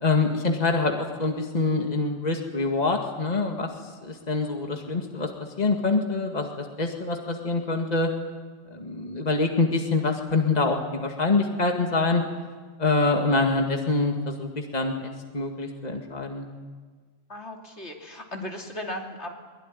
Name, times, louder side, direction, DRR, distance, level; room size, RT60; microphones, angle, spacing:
voice 1, 0.0-5.3 5.6-8.1 8.7-12.2 12.8-16.5, left 3 dB, 35° left, 3 dB, 2.2 m, -25 dB
voice 2, 17.3-19.3, left 1 dB, 75° left, 1 dB, 3.4 m, -36 dB
23.0 x 22.0 x 9.8 m, 1.5 s
omnidirectional pair, 1.2 m